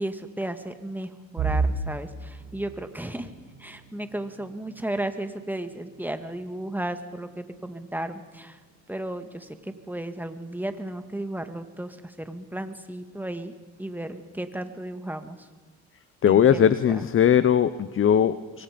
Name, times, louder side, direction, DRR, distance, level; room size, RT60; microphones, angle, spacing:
voice 1, 0.0-3.3 3.6-8.6 8.9-13.5 13.8-15.5 16.2-17.1, right 1 dB, 5° right, 8 dB, 1.9 m, -34 dB
sound 1, 1.4-13.2 13.6-13.9 14.3-14.4 15.3-15.8, right 4 dB, 85° right, 7.9 m, -37 dB
voice 2, 16.2-18.6, left 9 dB, 45° left, 14 dB, 0.8 m, -20 dB
25.5 x 23.5 x 5.2 m, 1.4 s
cardioid pair, 90°, 30 cm